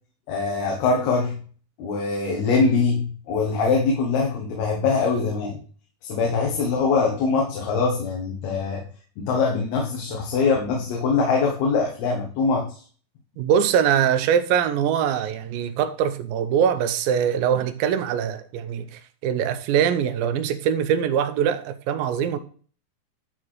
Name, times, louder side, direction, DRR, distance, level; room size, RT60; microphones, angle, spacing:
voice 1, 0.3-1.4 1.8-5.6 6.0-8.8 9.2-12.8, left 4 dB, 85° left, 3.4 m, -23 dB
voice 2, 13.4-22.4, right 8 dB, 80° right, 2.4 m, -23 dB
11.0 x 4.4 x 4.6 m
omnidirectional pair, 4.4 m